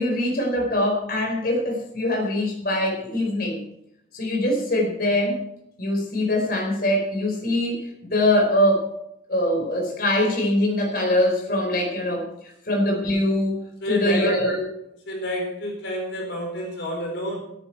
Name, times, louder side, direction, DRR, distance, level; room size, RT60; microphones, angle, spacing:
voice 1, 0.0-3.6 4.1-5.4 5.8-8.9 9.3-14.6, left 1 dB, 55° left, 0 dB, 4.6 m, -23 dB
voice 2, 13.8-14.3 15.1-17.4, left 1 dB, 75° left, 1 dB, 4.3 m, -29 dB
18.0 x 9.7 x 4.6 m, 0.79 s
head